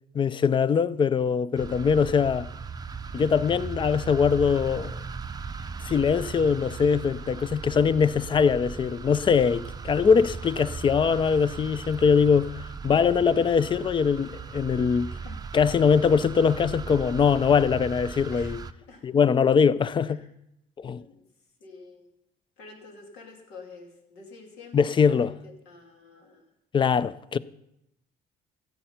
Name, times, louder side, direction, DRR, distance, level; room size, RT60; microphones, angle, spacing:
voice 1, 0.1-2.5 3.1-5.0 5.8-15.1 15.5-18.6 19.0-20.2 20.8-21.0 24.7-25.3 26.7-27.4, left 6 dB, 30° left, 0.4 m, -22 dB
sound 1, 1.6-18.7, right 5 dB, 25° right, 0.5 m, -38 dB
voice 2, 16.6-17.0 18.3-18.6 18.9-19.1 20.0-20.3 21.0-21.2 21.6-22.1 22.6-26.5, left 4 dB, 90° left, 2.6 m, -48 dB
14.5 x 8.0 x 5.7 m
cardioid pair, 110°, 17 cm